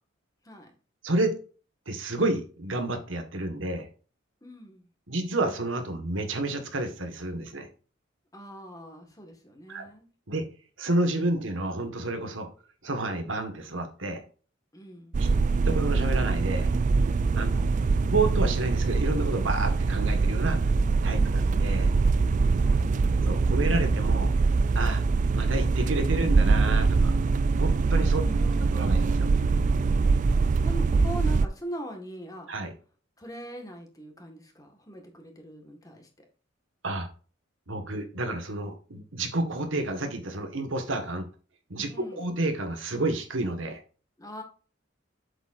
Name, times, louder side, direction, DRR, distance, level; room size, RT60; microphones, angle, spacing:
voice 1, 1.0-1.3 1.9-3.9 5.1-7.7 9.7-9.8 10.3-10.5 10.8-12.5 12.8-14.2 15.2-15.3 15.6-16.7 17.4-17.5 18.0-20.6 21.0-21.9 23.2-24.3 24.7-25.0 25.3-27.1 27.5-28.2 28.7-29.3 32.5-32.7 36.8-37.1 37.7-41.2 41.7-41.9 42.2-43.8, right 2 dB, 70° right, 1.7 m, -30 dB
voice 2, 4.4-4.9 8.3-10.1 14.7-15.2 17.5-17.7 22.6-22.9 28.2-28.9 30.3-32.5 33.2-36.3 41.9-42.3 44.2-44.4, right 1 dB, 15° left, 1.7 m, -41 dB
sound 1, 15.1-31.5, right 4 dB, 40° right, 0.3 m, -23 dB
7.9 x 7.3 x 2.6 m
head